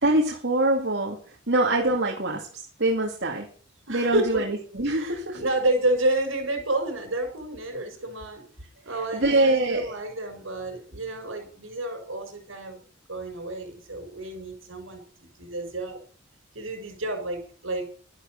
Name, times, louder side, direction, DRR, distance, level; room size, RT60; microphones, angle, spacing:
voice 1, 0.0-1.2 1.5-2.5 2.8-3.5 3.9-5.4 9.1-9.9, right 2 dB, 60° right, -1 dB, 2.5 m, -24 dB
voice 2, 3.9-4.4 4.9-8.4 8.8-12.8 13.1-16.0 16.5-17.8, right 1 dB, 75° right, 5 dB, 6.8 m, -30 dB
12.5 x 11.0 x 6.6 m, 0.44 s
head